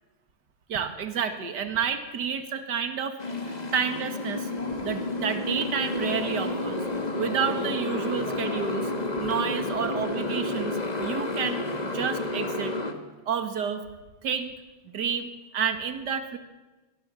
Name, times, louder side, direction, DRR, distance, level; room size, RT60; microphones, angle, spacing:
voice 1, 0.7-4.5 4.8-6.8 7.2-8.9 9.2-12.7 13.3-13.8 14.2-14.6 14.8-16.4, right 7 dB, 40° right, 8 dB, 1.8 m, -30 dB
Motorcycle, 3.2-12.9, left 2 dB, 25° left, 1.0 m, -30 dB
24.5 x 20.0 x 7.1 m, 1.1 s
omnidirectional pair, 3.7 m